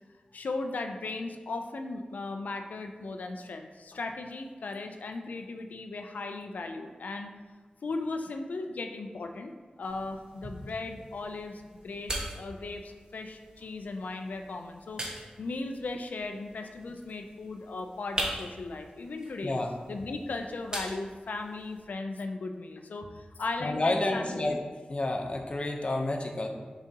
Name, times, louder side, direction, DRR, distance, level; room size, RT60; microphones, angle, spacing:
voice 1, 0.3-7.3 7.8-19.6 19.9-24.5, left 3 dB, 90° left, 5 dB, 0.4 m, -37 dB
sound 1, 9.8-21.8, right 1 dB, 35° right, 1.1 m, -42 dB
voice 2, 23.6-24.6 24.9-26.5, left 2 dB, 45° left, 3 dB, 0.7 m, -29 dB
7.1 x 4.9 x 2.8 m, 1.4 s
wide cardioid pair, 75°, 3 cm